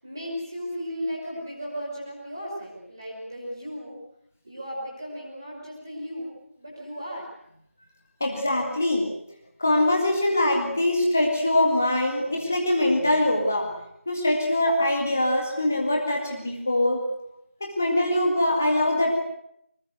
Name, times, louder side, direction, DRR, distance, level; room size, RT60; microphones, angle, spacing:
voice 1, 0.0-4.0 4.4-7.3 17.0-17.1, equal, 15° right, -4 dB, 5.7 m, -35 dB
voice 2, 8.2-9.1 9.6-13.7 14.1-17.1 17.6-19.2, left 1 dB, 10° left, 1 dB, 1.9 m, -23 dB
25.0 x 23.0 x 8.1 m, 0.76 s
figure-of-eight pair, 175°, 7 cm